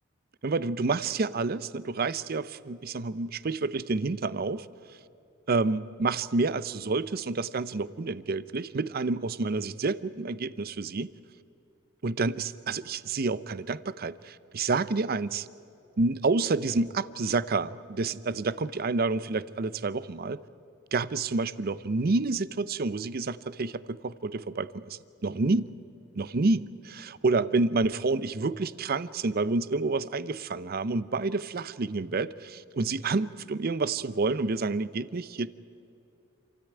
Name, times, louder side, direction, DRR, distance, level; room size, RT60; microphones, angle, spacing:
voice 1, 0.4-4.7 5.5-11.1 12.0-15.5 16.0-20.4 20.9-25.7 26.2-35.5, right 3 dB, 50° right, 17 dB, 0.6 m, -29 dB
28.0 x 13.5 x 9.3 m, 2.7 s
head